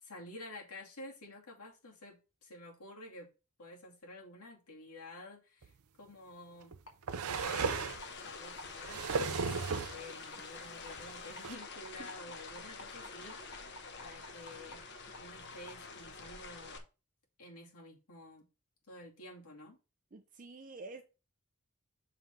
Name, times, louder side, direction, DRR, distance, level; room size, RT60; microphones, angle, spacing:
voice 1, 0.0-3.3 3.6-6.7 7.2-13.6 14.0-14.8 15.2-16.8 17.4-18.5 18.9-19.8, left 1 dB, 85° left, 2.6 m, -51 dB
sound 1, 5.6-5.7 6.7-8.0 8.6-10.0 11.0-11.1 11.4-11.6, right 5 dB, 80° right, 0.6 m, -35 dB
sound 2, 6.9-7.0 7.4-7.5 8.0-8.1 8.6-8.7 9.2-9.3 9.7-9.8 10.3-10.4 10.9-11.0 11.4-14.8 15.1-15.2 15.7-15.8, left 1 dB, 65° left, 1.8 m, -51 dB
sound 3, 7.3-16.8, left 4 dB, 50° left, 1.1 m, -47 dB
voice 2, 20.1-21.0, right 3 dB, 35° right, 0.6 m, -48 dB
6.7 x 3.8 x 5.4 m
head